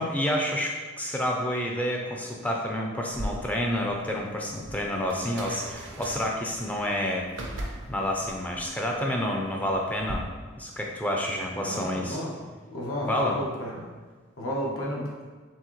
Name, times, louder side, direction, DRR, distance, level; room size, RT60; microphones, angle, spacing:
voice 1, 0.0-7.3 7.9-10.2 10.6-12.2 13.1-13.4, left 1 dB, 5° left, 0 dB, 0.4 m, -29 dB
sound 1, 3.1-10.1, right 1 dB, 65° right, 0.6 m, -40 dB
voice 2, 11.6-12.4 12.7-13.9 14.4-15.2, equal, 85° left, -4 dB, 1.0 m, -32 dB
4.6 x 3.5 x 3.0 m, 1.4 s
head